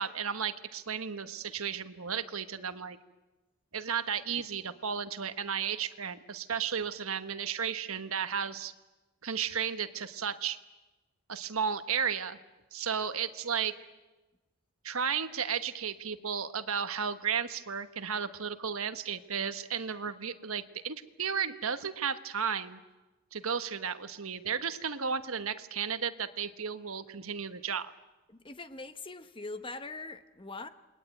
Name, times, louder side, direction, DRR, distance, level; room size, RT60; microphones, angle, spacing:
voice 1, 0.0-3.0 3.7-8.7 9.2-10.6 11.3-12.4 12.7-13.8 14.8-22.8 23.3-27.9, right 7 dB, 80° right, 11 dB, 1.3 m, -34 dB
voice 2, 28.3-30.7, left 3 dB, 25° left, 10 dB, 1.1 m, -42 dB
28.5 x 21.0 x 9.1 m, 1.1 s
head